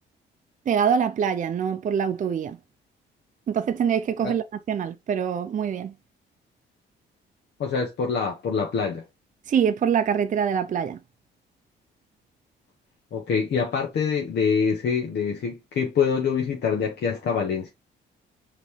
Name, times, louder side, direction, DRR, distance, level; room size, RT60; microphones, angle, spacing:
voice 1, 0.7-2.6 3.5-5.9 9.5-11.0, right 7 dB, 40° right, 0.5 m, -24 dB
voice 2, 7.6-9.0 13.1-17.7, left 6 dB, 60° left, 1.1 m, -25 dB
5.2 x 3.1 x 3.2 m
cardioid pair, 90°, 20 cm